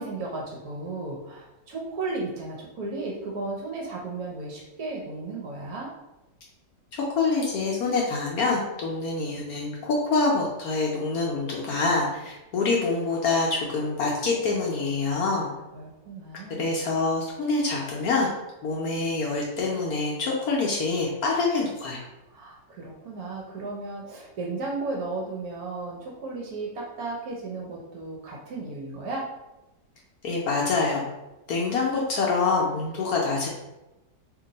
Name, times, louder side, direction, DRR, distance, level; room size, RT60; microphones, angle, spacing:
voice 1, 0.0-5.9 15.2-15.5 15.7-16.8 22.3-29.3, right 3 dB, 65° right, -2 dB, 1.0 m, -35 dB
voice 2, 6.9-15.5 16.6-18.3 18.6-22.0 30.2-31.0 31.5-33.5, left 3 dB, 70° left, -3 dB, 0.9 m, -26 dB
2.9 x 2.6 x 3.8 m, 1.0 s
omnidirectional pair, 2.0 m